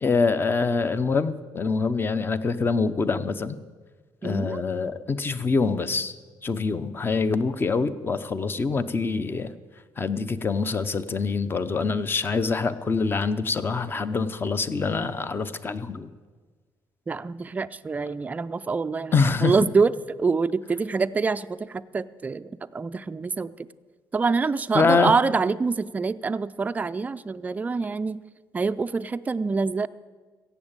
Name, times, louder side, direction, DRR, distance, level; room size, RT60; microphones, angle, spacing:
voice 1, 0.0-3.6 4.2-6.1 6.4-9.5 10.0-16.1 19.1-19.5 24.7-25.1, left 4 dB, 25° left, 13 dB, 0.7 m, -25 dB
voice 2, 4.2-4.6 17.1-19.1 19.4-19.9 20.2-23.7 24.1-28.2 28.5-29.9, right 4 dB, 20° right, 12 dB, 0.4 m, -25 dB
15.5 x 8.0 x 8.8 m, 1.4 s
cardioid pair, 130°, 8 cm